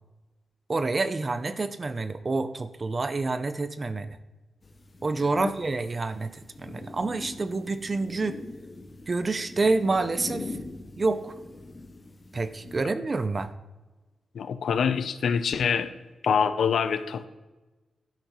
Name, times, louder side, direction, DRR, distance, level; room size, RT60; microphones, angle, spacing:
voice 1, 0.7-4.2 5.0-8.4 9.1-10.5 11.0-11.3 12.3-13.5, right 3 dB, 30° right, 12 dB, 0.5 m, -28 dB
sound 1, 4.6-12.8, left 2 dB, 25° left, 0.6 m, -43 dB
voice 2, 14.3-15.9 16.2-17.2, left 6 dB, 75° left, 11 dB, 0.6 m, -25 dB
12.0 x 10.0 x 3.1 m, 1.2 s
wide cardioid pair, 160°, 0 cm